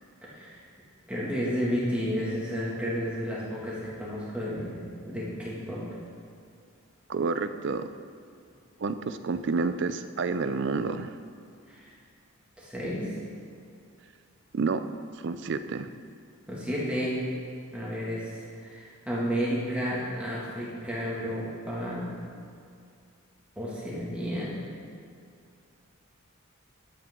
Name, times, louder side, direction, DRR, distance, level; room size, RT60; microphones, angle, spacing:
voice 1, 0.3-0.6 1.1-4.8 5.1-5.8 11.7-11.9 12.6-13.1 16.5-17.2 17.7-22.0 23.6-24.5, equal, 5° right, -7 dB, 2.1 m, -32 dB
voice 2, 7.1-7.9 8.8-11.2 14.5-14.8 15.2-15.9, right 4 dB, 50° right, 11 dB, 0.4 m, -29 dB
10.5 x 8.8 x 3.7 m, 2.4 s
head